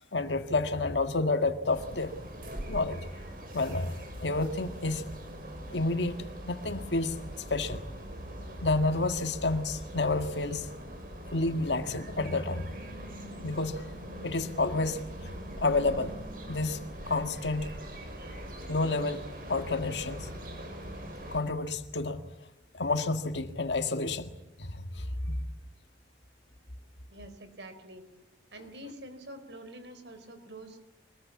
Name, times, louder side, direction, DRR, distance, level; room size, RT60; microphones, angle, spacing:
voice 1, 0.1-2.1 2.7-3.0 3.5-3.9 4.2-5.1 5.7-7.2 7.5-7.8 8.6-10.7 11.3-12.7 13.4-13.9 14.2-15.3 15.6-16.1 16.5-17.7 18.7-20.3 21.3-22.2 22.7-24.3 24.6-25.5, left 3 dB, 80° left, 1.8 m, -30 dB
sound 1, 1.7-21.4, equal, 50° right, 6.7 m, -42 dB
voice 2, 27.1-28.0 28.5-30.8, right 1 dB, 80° right, 4.4 m, -46 dB
25.0 x 20.5 x 8.5 m
head